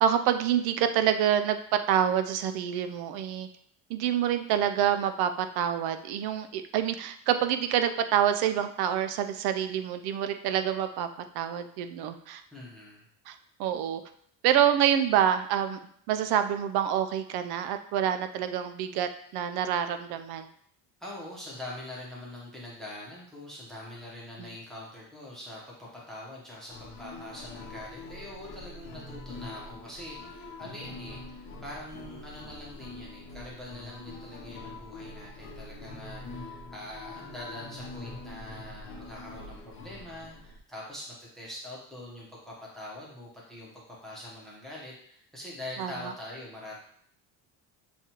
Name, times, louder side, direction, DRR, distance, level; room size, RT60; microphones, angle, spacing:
voice 1, 0.0-1.6 1.9-3.5 3.9-11.1 11.3-12.4 13.3-14.0 14.4-15.8 16.1-20.5 24.4-24.5 45.8-45.9, right 10 dB, 70° right, 9 dB, 0.5 m, -27 dB
voice 2, 12.5-13.0 21.0-46.7, left 1 dB, ahead, -5 dB, 0.9 m, -43 dB
sound 1, 26.7-40.6, left 2 dB, 60° left, 0.8 m, -44 dB
7.1 x 2.4 x 2.9 m, 0.65 s
cardioid pair, 160°, 40 cm